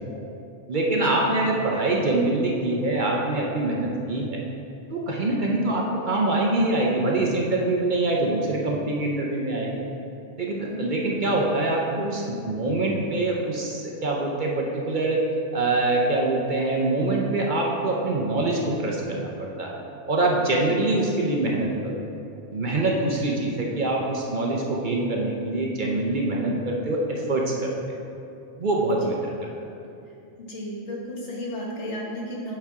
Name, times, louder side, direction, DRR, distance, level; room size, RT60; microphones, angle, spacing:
voice 1, 0.7-4.4 4.9-9.7 10.4-15.2 15.5-19.8 20.1-22.0 22.5-27.7 28.6-29.3, right 2 dB, 50° right, -2 dB, 0.8 m, -24 dB
voice 2, 10.6-11.0 20.7-20.8 28.9-29.1 30.5-32.5, equal, 75° left, -3 dB, 1.6 m, -34 dB
7.7 x 4.3 x 4.6 m, 2.7 s
omnidirectional pair, 1.2 m